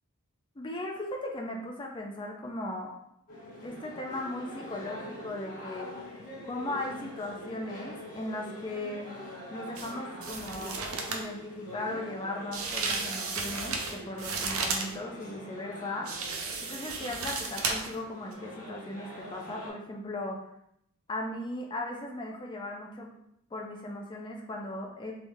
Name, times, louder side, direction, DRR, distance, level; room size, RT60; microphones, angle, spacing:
voice 1, 0.6-2.9 3.6-9.1 9.5-10.8 11.1-16.4 16.7-20.4 21.1-23.1 23.5-25.1, left 1 dB, 20° left, 0 dB, 0.4 m, -37 dB
sound 1, 3.3-19.7, left 1 dB, 40° left, 1.1 m, -44 dB
sound 2, 9.8-9.9 10.2-11.3 12.5-14.9 16.1-18.0 18.3-18.4, right 4 dB, 70° right, 0.5 m, -33 dB
3.5 x 3.2 x 2.6 m, 0.75 s
head